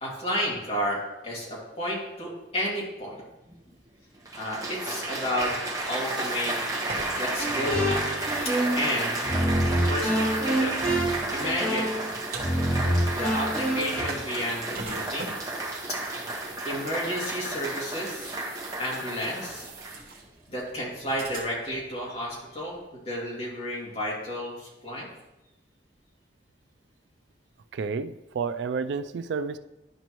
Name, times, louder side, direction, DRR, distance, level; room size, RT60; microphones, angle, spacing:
voice 1, 0.0-3.2 4.4-5.5 5.9-6.6 7.2-8.1 8.8-9.1 9.9-11.0 11.3-11.9 13.1-15.3 16.6-18.3 18.8-19.7 20.5-25.1, equal, 35° left, -4 dB, 2.4 m, -31 dB
Applause, 3.5-3.6 4.2-20.2 20.9-21.2, right 2 dB, 20° right, 1.2 m, -32 dB
sound 1, 5.3-21.9, right 4 dB, 55° right, 1.1 m, -43 dB
sound 2, 7.4-8.9 9.2-14.0, right 1 dB, 5° left, 2.3 m, -27 dB
voice 2, 27.7-29.6, right 5 dB, 70° right, 11 dB, 0.4 m, -30 dB
11.0 x 5.2 x 3.0 m, 0.96 s
head